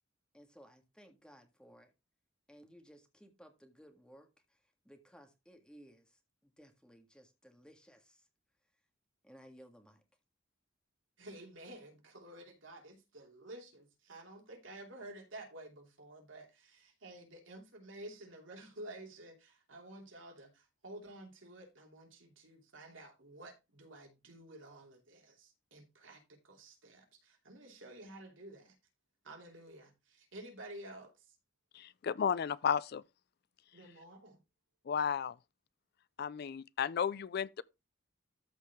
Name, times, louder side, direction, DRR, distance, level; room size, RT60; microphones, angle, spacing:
voice 1, 0.3-1.9 2.5-8.3 9.2-10.0, equal, 5° left, 1.8 m, -59 dB
voice 2, 11.2-28.7 29.2-31.3 33.7-34.4, right 1 dB, 80° right, 2.9 m, -51 dB
voice 3, 31.7-33.0 34.9-35.4 36.2-37.6, left 7 dB, 55° left, 0.4 m, -33 dB
13.5 x 4.7 x 3.5 m
head